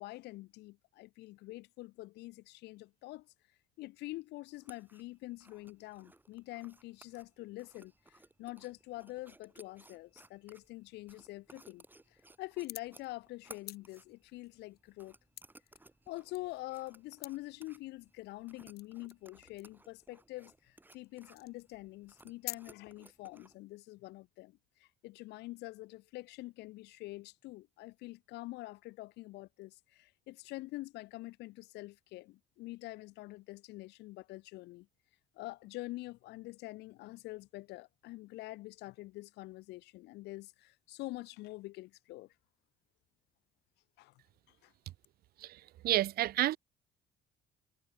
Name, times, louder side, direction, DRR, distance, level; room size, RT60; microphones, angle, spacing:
voice 1, 0.0-3.3 3.8-11.8 12.1-15.1 16.1-34.9 35.3-42.3 44.0-44.1 44.6-44.7, left 19 dB, 85° left, 5.0 m, -46 dB
sound 1, 4.5-23.6, right 2 dB, 10° right, 7.0 m, -61 dB
sound 2, 12.6-13.1 13.4-15.8 16.1-16.9 17.2-17.4 18.0-18.1 18.8-19.2 19.6-19.9 20.5-20.6 20.9-21.1 21.3-21.8 22.1-22.6, left 14 dB, 70° left, 1.8 m, -47 dB
voice 2, 45.8-46.6, right 14 dB, 65° right, 0.8 m, -29 dB
cardioid pair, 110°, 17 cm